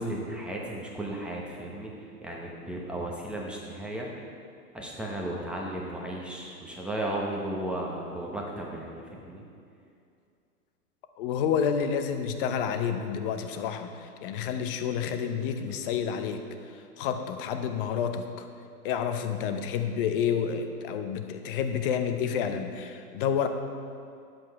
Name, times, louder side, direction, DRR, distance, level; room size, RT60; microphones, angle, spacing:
voice 1, 0.0-4.1 4.7-9.4, right 1 dB, ahead, -3 dB, 0.8 m, -35 dB
voice 2, 11.2-16.4 16.7-18.5 18.8-23.5, left 7 dB, 35° left, 7 dB, 0.8 m, -29 dB
10.5 x 7.8 x 4.7 m, 2.4 s
hypercardioid pair, 140°, 48 cm